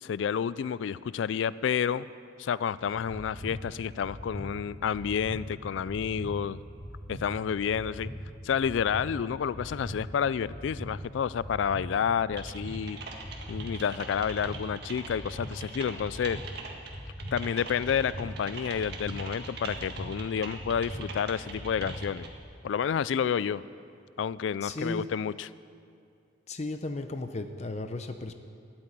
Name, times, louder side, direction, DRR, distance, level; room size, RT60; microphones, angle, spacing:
voice 1, 0.0-2.1 2.4-6.6 7.1-8.1 8.4-13.0 13.5-16.4 17.3-22.3 22.6-23.6 24.2-25.5, left 7 dB, 75° left, 18 dB, 0.3 m, -30 dB
sound 1, 3.1-22.4, equal, 30° right, 4.2 m, -41 dB
Typing, 12.4-22.3, right 4 dB, 60° right, 1.8 m, -43 dB
voice 2, 24.6-25.0 26.5-28.3, left 2 dB, 35° left, 8 dB, 0.6 m, -35 dB
13.0 x 8.8 x 9.8 m, 2.3 s
head